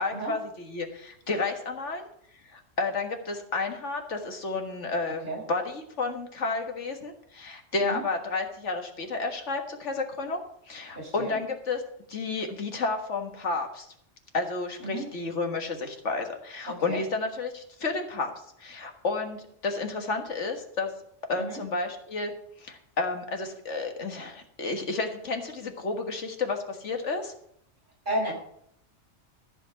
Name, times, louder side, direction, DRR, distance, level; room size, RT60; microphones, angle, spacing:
voice 1, 0.0-2.1 2.5-10.4 10.7-11.8 12.1-13.9 14.3-18.3 18.6-20.9 21.3-22.3 22.6-27.3, left 3 dB, 80° left, 4 dB, 1.9 m, -31 dB
voice 2, 11.0-11.4 14.8-15.0 16.9-17.0 21.3-21.6 28.1-28.3, right 1 dB, 45° right, -3 dB, 5.5 m, -32 dB
14.0 x 5.4 x 8.0 m, 0.70 s
omnidirectional pair, 1.2 m